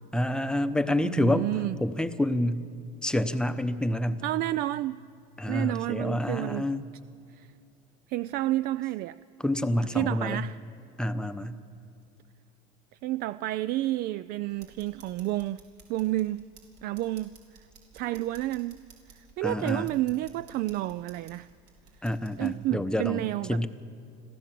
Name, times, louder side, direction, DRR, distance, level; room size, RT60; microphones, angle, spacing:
voice 1, 0.1-1.5 1.8-2.7 3.0-4.2 5.4-6.9 9.4-10.4 11.0-11.6 19.4-19.9 22.0-23.7, left 1 dB, 5° left, 10 dB, 0.8 m, -28 dB
voice 2, 1.0-1.8 4.2-5.0 5.5-6.7 7.4-7.5 8.1-9.2 9.9-10.6 13.0-15.6 15.9-16.4 16.8-17.3 17.9-18.8 19.4-21.5 22.4-23.7, right 16 dB, 55° right, 17 dB, 0.4 m, -30 dB
sound 1, 14.5-22.5, right 5 dB, 70° right, 4.6 m, -56 dB
26.0 x 15.5 x 7.6 m, 2.7 s
cardioid pair, 130°, 19 cm